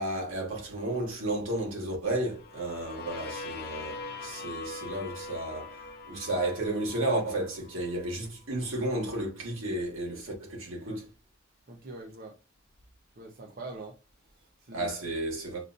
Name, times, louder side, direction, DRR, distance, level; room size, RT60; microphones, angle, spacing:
voice 1, 0.0-5.8 6.1-11.1 14.7-15.6, right 1 dB, 75° right, 1.7 m, -32 dB
sound 1, 2.3-8.1, left 4 dB, 55° left, 0.8 m, -42 dB
voice 2, 11.7-12.4 13.2-14.0 14.2-15.1, right 2 dB, 50° right, 0.7 m, -44 dB
6.9 x 2.6 x 2.6 m
head